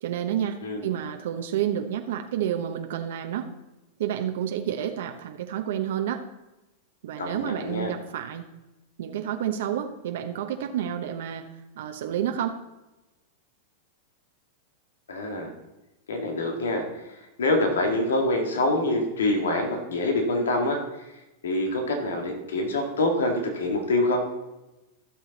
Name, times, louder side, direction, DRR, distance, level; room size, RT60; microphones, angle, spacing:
voice 1, 0.0-3.5 4.0-6.2 7.0-8.4 9.0-11.5 11.8-12.6, right 10 dB, 75° right, 5 dB, 0.9 m, -29 dB
voice 2, 7.2-7.9 15.1-15.5 16.1-16.8 17.4-20.8 21.4-24.2, left 2 dB, 90° left, 3 dB, 2.0 m, -25 dB
15.0 x 6.4 x 4.1 m, 1.0 s
hypercardioid pair, 115°, 0 cm